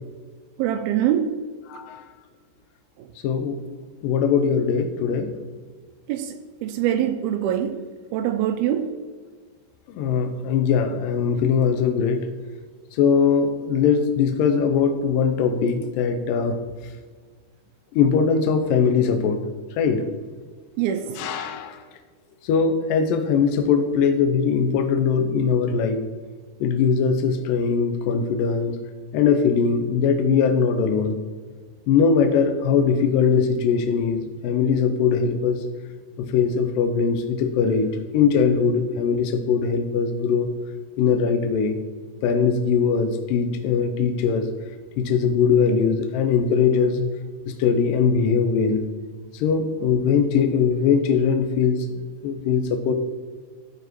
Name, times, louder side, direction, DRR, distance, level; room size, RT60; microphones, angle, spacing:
voice 1, 0.6-1.4 6.1-7.9 8.1-9.0 20.8-21.4, right 10 dB, 80° right, 2.2 m, -24 dB
voice 2, 1.7-2.0 3.2-3.6 4.0-5.3 10.0-12.3 13.0-16.6 17.9-19.4 19.8-20.0 21.2-21.8 22.4-26.0 26.6-28.7 29.1-31.2 31.9-35.6 36.2-40.5 41.0-41.8 42.2-44.5 45.0-47.1 47.5-48.8 49.3-52.9, left 6 dB, 80° left, 2.0 m, -21 dB
14.0 x 4.9 x 4.6 m
omnidirectional pair, 4.7 m